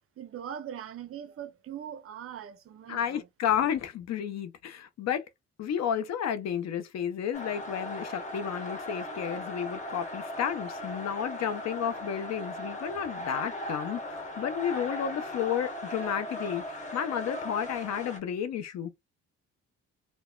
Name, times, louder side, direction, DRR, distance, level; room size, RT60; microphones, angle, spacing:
voice 1, 0.2-3.3, right 9 dB, 50° right, 0.5 m, -41 dB
voice 2, 2.9-5.2 5.6-18.9, left 9 dB, 60° left, 0.6 m, -32 dB
sound 1, 7.3-18.2, left 1 dB, 25° left, 1.2 m, -38 dB
3.0 x 2.0 x 2.2 m
cardioid pair, 90°, 30 cm